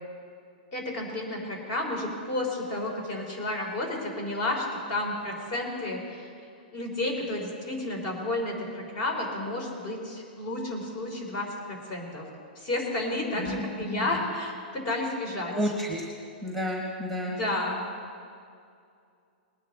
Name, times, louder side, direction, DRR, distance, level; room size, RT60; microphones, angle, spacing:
voice 1, 0.7-6.3 6.7-12.2 12.6-15.7 17.3-17.8, left 2 dB, 45° left, 1 dB, 3.9 m, -31 dB
voice 2, 13.9-14.2 15.5-16.0 16.4-17.3, equal, 5° left, 0 dB, 1.4 m, -31 dB
20.5 x 9.8 x 4.1 m, 2.4 s
hypercardioid pair, 145°, 5 cm